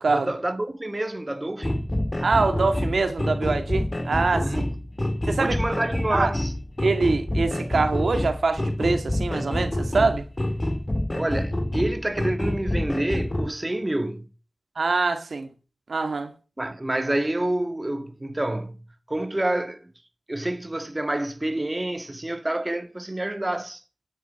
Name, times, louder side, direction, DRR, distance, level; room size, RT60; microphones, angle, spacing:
voice 1, 0.1-1.9 4.4-4.8 5.3-6.5 11.1-14.3 16.6-18.8 19.1-19.9 20.3-23.8, right 1 dB, 25° right, 1.7 m, -28 dB
sound 1, 1.6-13.5, left 1 dB, 30° left, 3.9 m, -27 dB
voice 2, 2.2-4.5 5.3-5.6 6.1-6.3 6.8-10.3 14.8-15.5 15.9-16.3, right 3 dB, 80° right, 2.1 m, -24 dB
10.5 x 9.3 x 8.1 m
wide cardioid pair, 55°, 0 cm